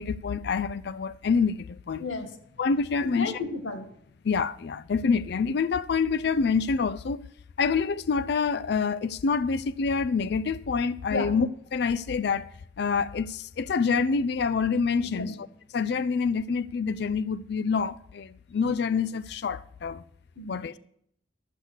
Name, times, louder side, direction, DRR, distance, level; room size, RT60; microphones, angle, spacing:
voice 1, 0.0-2.1 2.6-3.4 4.2-7.2 7.6-12.5 12.8-15.5 15.7-20.0 20.5-20.7, left 5 dB, 55° left, 0.4 m, -27 dB
voice 2, 3.0-3.9 11.1-11.3 15.0-15.3 20.4-20.8, left 3 dB, 90° left, 2.2 m, -33 dB
12.5 x 8.0 x 6.3 m
head